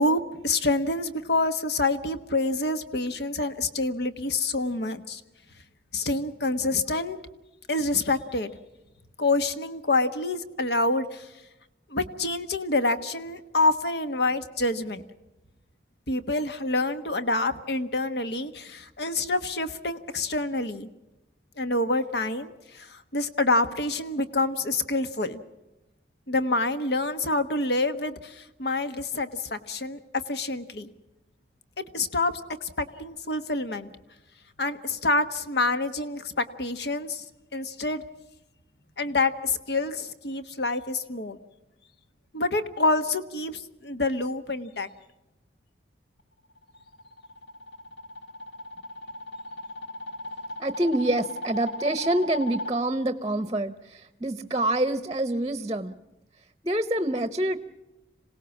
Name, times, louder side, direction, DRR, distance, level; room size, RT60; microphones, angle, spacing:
voice 1, 0.0-5.2 5.9-7.2 7.7-8.5 9.2-11.3 11.9-15.0 16.1-20.9 21.6-25.4 26.3-30.9 31.8-32.3 32.6-33.9 34.6-37.2 37.5-38.0 39.0-41.4 42.3-44.9, left 2 dB, 70° left, 10 dB, 1.3 m, -27 dB
sound 1, 46.6-52.7, left 1 dB, 85° left, 1.6 m, -37 dB
voice 2, 50.6-56.0 56.6-57.6, right 1 dB, 20° right, 11 dB, 0.8 m, -26 dB
26.5 x 17.5 x 7.2 m, 1.0 s
head